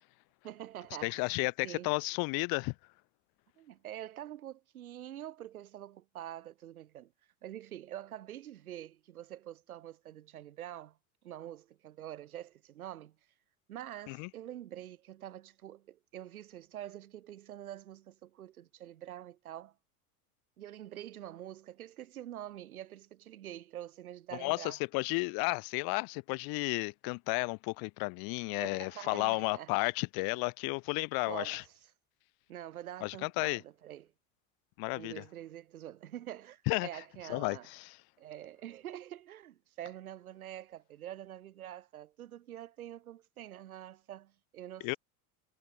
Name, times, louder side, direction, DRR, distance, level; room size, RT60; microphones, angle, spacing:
voice 1, 0.4-1.2 1.6-1.9 3.6-7.1 7.4-11.0 11.2-13.2 13.7-19.7 20.6-24.8 28.6-29.7 31.3-31.7 32.5-34.1 35.0-37.7 38.2-45.0, right 12 dB, 75° right, 8.0 m, -46 dB
voice 2, 1.0-2.7 14.1-14.3 24.4-31.6 33.0-33.6 34.8-35.2 36.7-36.9 37.3-38.0 44.8-45.0, left 31 dB, 55° left, 2.4 m, -33 dB
figure-of-eight pair, 80°, 44 cm